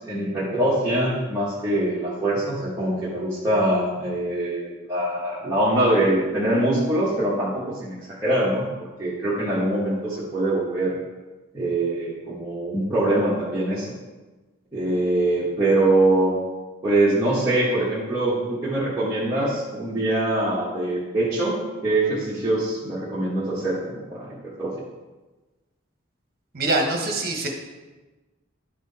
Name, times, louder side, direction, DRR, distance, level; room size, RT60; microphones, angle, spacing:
voice 1, 0.0-11.0 11.5-13.9 14.7-16.3 16.8-21.5 21.8-24.7, right 1 dB, 15° right, -10 dB, 1.4 m, -23 dB
voice 2, 26.5-27.5, right 2 dB, 45° right, 2 dB, 1.2 m, -24 dB
11.0 x 4.7 x 4.1 m, 1.2 s
head